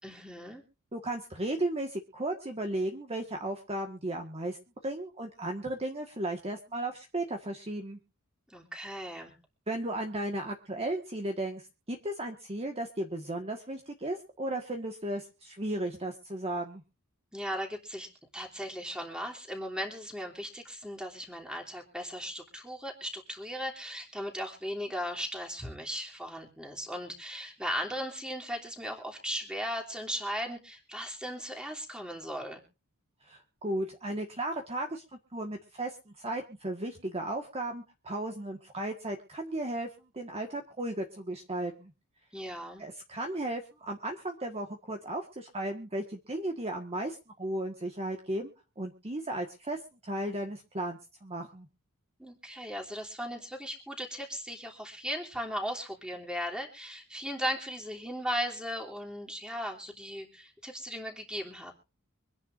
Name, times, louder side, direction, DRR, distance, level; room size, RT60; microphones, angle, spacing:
voice 1, 0.0-0.6 8.5-9.3 17.3-32.6 42.3-42.8 52.2-61.7, equal, 5° right, 0 dB, 3.1 m, -37 dB
voice 2, 0.9-4.6 4.8-8.0 9.7-16.8 33.2-35.0 35.3-39.9 40.1-41.9 42.8-48.5 48.8-51.7, right 1 dB, 30° right, 3 dB, 1.6 m, -35 dB
25.0 x 10.5 x 2.6 m, 0.33 s
head